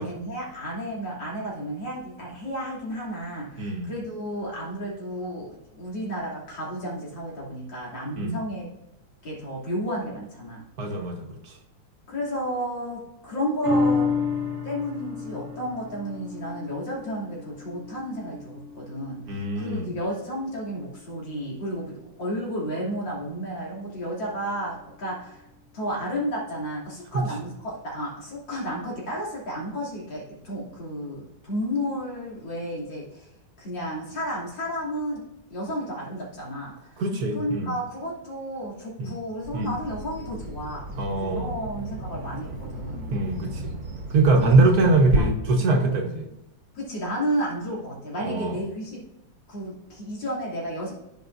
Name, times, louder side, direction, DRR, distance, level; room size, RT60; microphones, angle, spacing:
voice 1, 0.0-8.7 9.2-10.6 12.1-14.1 14.6-25.4 25.7-33.3 33.6-35.2 35.5-37.0 37.3-43.1 44.4-45.3 46.7-49.0 49.5-50.9, equal, 85° left, -6 dB, 3.7 m, -32 dB
voice 2, 3.6-3.9 8.2-8.4 10.8-11.5 19.3-19.9 27.1-27.3 37.0-37.8 39.0-39.1 39.5-39.7 41.0-41.5 43.1-43.7 44.1-46.3 48.2-48.6, right 3 dB, 60° right, 2 dB, 1.6 m, -23 dB
sound 1, 13.6-20.3 20.8-20.9, left 4 dB, 40° right, 1.4 m, -30 dB
Bird vocalization bird call bird song, 39.4-45.2, right 2 dB, 75° right, 2.0 m, -34 dB
14.5 x 5.4 x 2.6 m, 0.87 s
omnidirectional pair, 2.0 m